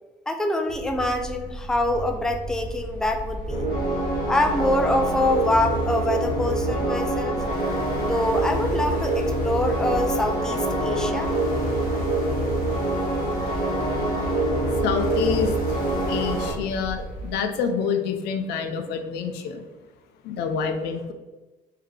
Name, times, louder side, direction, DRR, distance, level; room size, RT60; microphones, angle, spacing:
voice 1, 0.3-3.7 4.3-7.4 8.0-11.3, left 1 dB, 5° left, 5 dB, 0.3 m, -25 dB
sound 1, 0.7-17.3, right 1 dB, 50° right, 0.7 m, -36 dB
sound 2, 3.5-16.5, right 1 dB, 60° left, 1.3 m, -25 dB
voice 2, 14.8-15.8 16.1-19.6 20.2-21.1, left 6 dB, 85° left, 7 dB, 0.5 m, -27 dB
3.6 x 2.8 x 3.2 m, 1.2 s
cardioid pair, 110°, 17 cm